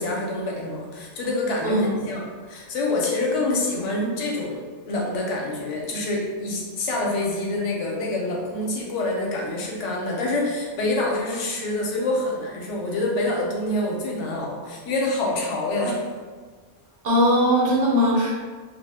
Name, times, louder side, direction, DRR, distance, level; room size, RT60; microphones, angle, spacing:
voice 1, 0.0-4.6 4.9-16.0, left 2 dB, 70° left, -1 dB, 0.9 m, -26 dB
voice 2, 1.6-2.0 17.0-18.3, equal, 60° right, -4 dB, 0.7 m, -20 dB
2.4 x 2.1 x 3.3 m, 1.5 s
omnidirectional pair, 1.3 m